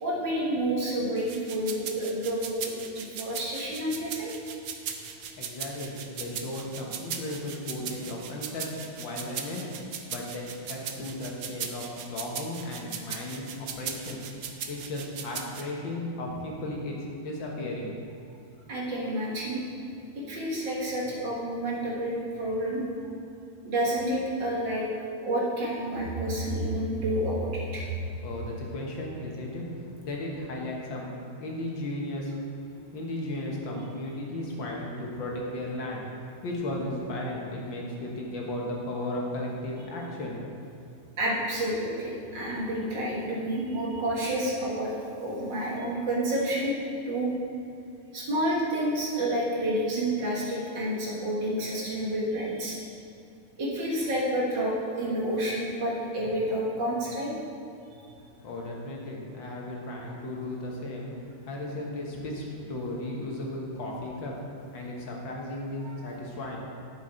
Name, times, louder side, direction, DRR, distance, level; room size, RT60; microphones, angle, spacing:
voice 1, 0.0-4.3 18.7-19.6 20.2-22.8 23.6-24.9 25.2-27.9 41.2-44.9 45.2-46.7 47.1-47.3 48.1-52.8 53.6-57.3, right 1 dB, 60° right, -5 dB, 2.2 m, -29 dB
sound 1, 1.2-15.6, right 7 dB, 90° right, 0.8 m, -38 dB
voice 2, 5.4-9.7 10.1-14.2 14.7-17.0 17.2-17.9 28.2-31.1 31.4-32.3 32.9-36.0 36.4-40.4 58.4-61.1 61.5-64.3 64.7-66.6, left 1 dB, 65° left, -2 dB, 1.8 m, -35 dB
11.0 x 6.6 x 4.3 m, 2.6 s
omnidirectional pair, 2.4 m